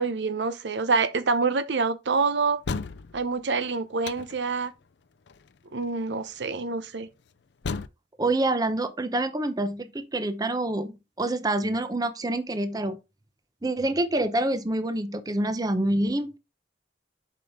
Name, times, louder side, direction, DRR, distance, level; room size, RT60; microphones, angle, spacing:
voice 1, 0.0-2.6 3.1-4.7 5.7-7.1, right 4 dB, 75° right, 0.7 m, -26 dB
sound 1, 2.6-3.3 4.0-4.6 5.3-5.5 5.8-5.9 7.6-7.9, left 4 dB, 70° left, 0.5 m, -32 dB
voice 2, 8.2-13.0 13.6-16.4, right 1 dB, 20° right, 0.7 m, -27 dB
7.4 x 5.3 x 3.6 m
head